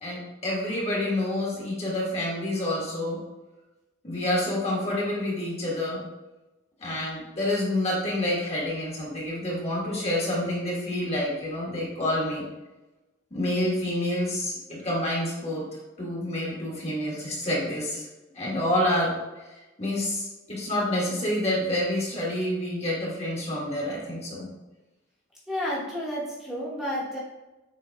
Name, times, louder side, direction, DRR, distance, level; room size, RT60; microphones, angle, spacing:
voice 1, 0.0-3.2 4.0-6.0 6.8-12.4 13.3-15.6 16.0-18.1 18.3-19.1 19.5-24.5, left 1 dB, 30° left, -4 dB, 1.4 m, -28 dB
voice 2, 25.5-27.2, equal, ahead, -8 dB, 1.1 m, -31 dB
7.2 x 3.0 x 2.3 m, 1.1 s
head